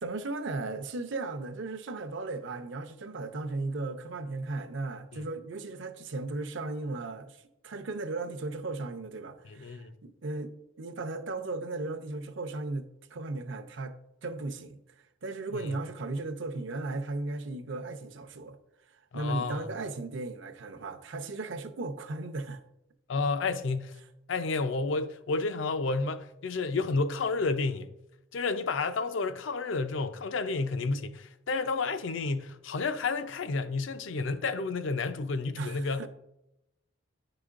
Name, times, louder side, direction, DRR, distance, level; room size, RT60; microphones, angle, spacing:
voice 1, 0.0-13.9 14.2-18.6 19.1-22.6 35.6-36.1, right 2 dB, 70° right, 0.6 m, -36 dB
voice 2, 9.5-9.9 15.5-15.7 19.1-19.7 23.1-24.0 24.3-27.9 28.3-36.1, left 3 dB, 70° left, 0.5 m, -31 dB
10.5 x 4.9 x 2.5 m
head